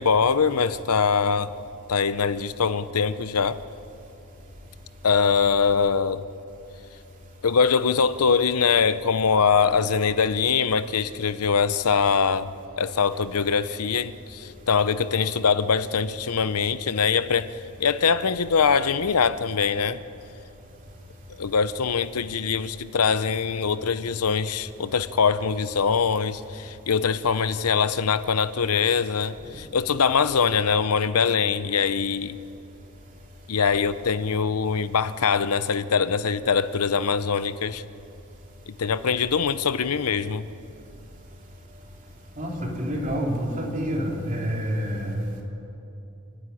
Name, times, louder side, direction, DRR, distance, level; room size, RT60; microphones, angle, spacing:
voice 1, 0.0-1.5 1.9-3.6 5.0-6.2 7.4-12.5 12.8-17.5 17.8-20.0 21.4-32.4 33.5-37.8 38.7-40.5, left 6 dB, 85° left, 0.7 m, -23 dB
voice 2, 42.4-45.3, equal, 35° right, 3.1 m, -28 dB
28.5 x 10.0 x 9.9 m
head